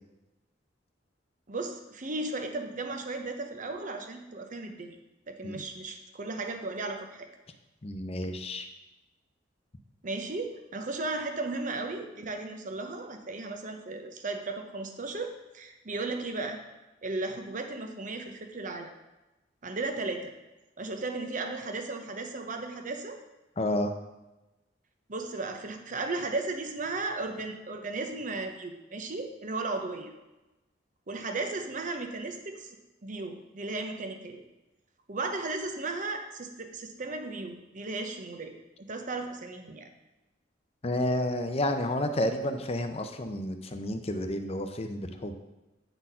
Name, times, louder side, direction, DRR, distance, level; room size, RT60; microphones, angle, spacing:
voice 1, 1.5-5.0 5.3-7.3 10.0-16.6 17.0-18.9 19.6-20.3 20.8-23.2 25.1-30.1 31.1-32.8 33.0-34.4 35.1-39.9, right 3 dB, 45° right, 5 dB, 0.8 m, -35 dB
voice 2, 7.8-8.7 23.6-23.9 40.8-45.4, left 1 dB, 35° left, 7 dB, 0.6 m, -30 dB
9.0 x 4.2 x 5.5 m, 1.0 s
head